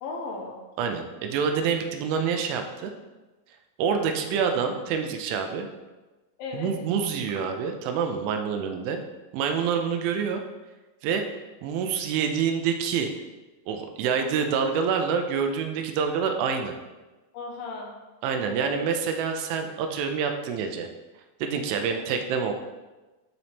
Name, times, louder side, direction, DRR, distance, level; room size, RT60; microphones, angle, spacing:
voice 1, 0.0-0.6 6.4-6.7 17.3-17.9 18.5-18.8 21.8-22.0, left 3 dB, 75° left, 0 dB, 3.4 m, -35 dB
voice 2, 0.8-2.9 3.8-5.7 6.5-9.0 9.3-10.4 11.0-11.3 11.6-13.1 13.7-16.7 18.2-20.9 21.4-22.5, right 6 dB, 80° right, 5 dB, 3.1 m, -27 dB
12.0 x 4.2 x 3.5 m, 1.1 s
omnidirectional pair, 5.6 m